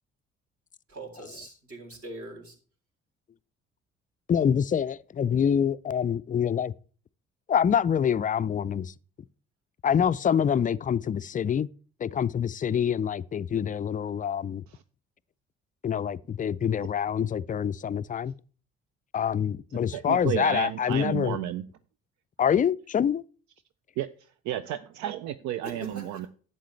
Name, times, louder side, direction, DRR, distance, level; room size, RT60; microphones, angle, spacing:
voice 1, 0.9-2.5 10.2-10.6 25.6-26.3, right 2 dB, 45° right, 3.4 m, -42 dB
voice 2, 4.3-6.7 7.5-8.9 9.8-11.7 12.0-14.6 15.8-18.3 19.1-21.4 22.4-23.2, left 8 dB, 25° left, 0.4 m, -26 dB
voice 3, 19.9-21.6 24.0-24.1 24.4-26.3, right 12 dB, 65° right, 0.5 m, -32 dB
11.0 x 7.9 x 3.2 m
hypercardioid pair, 45°, 31 cm